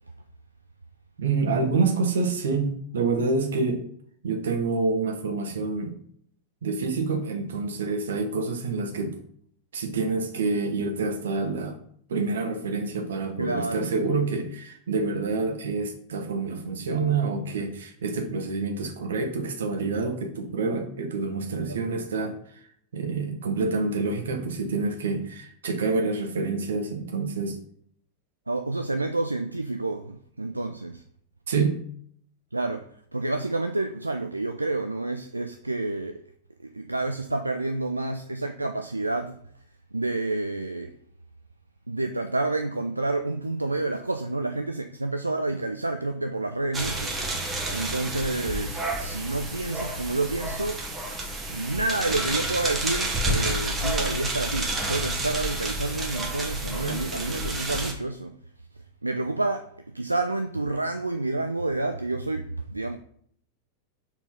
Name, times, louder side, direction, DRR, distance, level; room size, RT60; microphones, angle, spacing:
voice 1, 1.2-3.9 4.2-6.0 6.6-9.2 9.7-11.8 12.1-22.4 22.9-27.6 31.5-31.8, right 4 dB, 65° right, 1.0 m, -27 dB
voice 2, 13.4-13.9 21.7-21.8 28.5-31.0 32.5-36.2 36.6-39.4 39.9-40.9 41.9-47.2 47.7-50.9 51.5-58.4 58.7-63.0, right 2 dB, 85° right, 0.4 m, -29 dB
sound 1, 46.7-57.9, right 1 dB, 15° right, 1.2 m, -30 dB
4.3 x 4.0 x 5.4 m
figure-of-eight pair, 90°, 0 cm